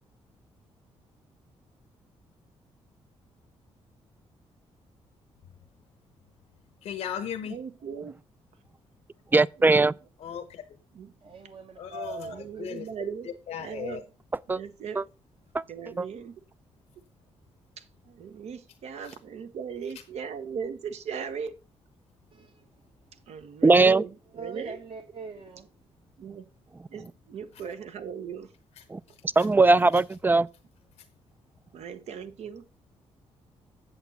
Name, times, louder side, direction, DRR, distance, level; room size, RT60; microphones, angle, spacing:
voice 1, 6.8-7.6 10.2-10.6 11.8-12.9 13.5-14.0, left 8 dB, 75° left, 0.9 m, -36 dB
voice 2, 7.4-8.2 9.6-9.7 10.9-11.1 12.3-14.0 14.5-15.0 15.7-16.4 17.8-21.6 23.3-24.8 26.2-26.4 26.9-28.5 31.7-32.7, right 7 dB, 75° right, 1.0 m, -38 dB
voice 3, 9.3-9.9 14.5-14.6 15.0-15.1 15.5-15.6 16.0-16.1 23.6-24.0 28.9-29.0 29.4-30.5, right 3 dB, 15° right, 0.3 m, -19 dB
voice 4, 11.2-12.6 22.3-22.6 24.3-25.7, right 3 dB, 50° right, 1.2 m, -41 dB
8.2 x 7.1 x 4.1 m
cardioid pair, 75°, 11 cm